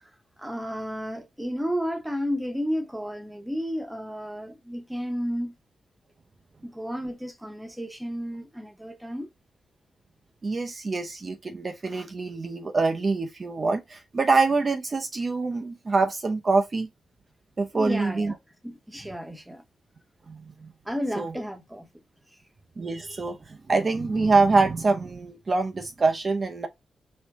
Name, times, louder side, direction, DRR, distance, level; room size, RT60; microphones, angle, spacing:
voice 1, 0.4-5.5 6.6-9.3 17.7-18.4 18.6-19.6 20.8-21.9, equal, 5° right, 0.9 m, -32 dB
voice 2, 10.4-16.9 17.6-18.3 20.3-20.7 21.2-21.3 22.8-26.7, right 3 dB, 45° right, 0.6 m, -25 dB
4.5 x 2.1 x 3.5 m
cardioid pair, 65°, 0 cm